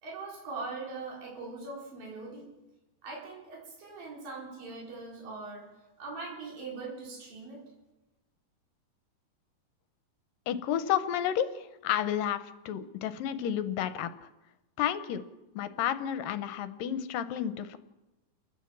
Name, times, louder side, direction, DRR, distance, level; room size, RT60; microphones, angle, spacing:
voice 1, 0.0-2.5 3.0-5.7 6.0-7.6, right 3 dB, 80° right, -3 dB, 5.8 m, -41 dB
voice 2, 10.5-14.3 14.8-15.2 15.5-17.8, left 10 dB, 80° left, 11 dB, 2.6 m, -31 dB
30.0 x 11.5 x 7.4 m, 1.1 s
omnidirectional pair, 4.0 m